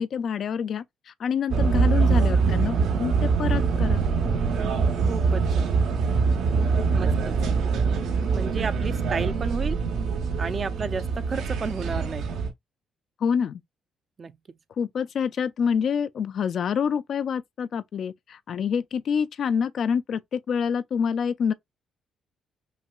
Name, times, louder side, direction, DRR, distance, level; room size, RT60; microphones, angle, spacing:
voice 1, 0.0-4.0 13.2-13.6 14.8-21.5, left 7 dB, 60° left, 0.4 m, -27 dB
sound 1, 1.5-12.5, right 5 dB, 80° right, 0.9 m, -24 dB
voice 2, 5.1-5.8 6.9-7.4 8.3-9.8 10.4-12.3 14.2-14.3, right 5 dB, 40° right, 0.4 m, -32 dB
5.5 x 2.2 x 2.3 m
cardioid pair, 90°, 0 cm